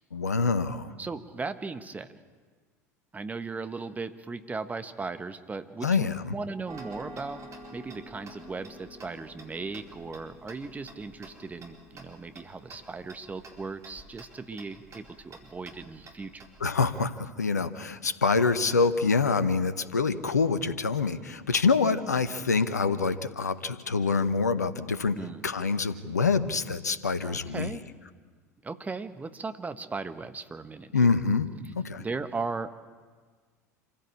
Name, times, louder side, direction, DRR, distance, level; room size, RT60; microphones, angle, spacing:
voice 1, 0.1-0.9 5.8-6.3 16.6-25.2 25.4-27.8 30.9-31.5 31.8-32.0, left 4 dB, 85° left, 13 dB, 1.0 m, -26 dB
voice 2, 1.0-2.2 3.1-16.4 25.1-25.4 27.2-27.8 28.6-31.2 32.0-32.8, right 4 dB, 20° right, 10 dB, 1.3 m, -37 dB
Tick-tock, 6.7-16.9, right 1 dB, 35° right, 4.3 m, -49 dB
26.5 x 15.5 x 8.5 m, 1.5 s
figure-of-eight pair, 75°, 9 cm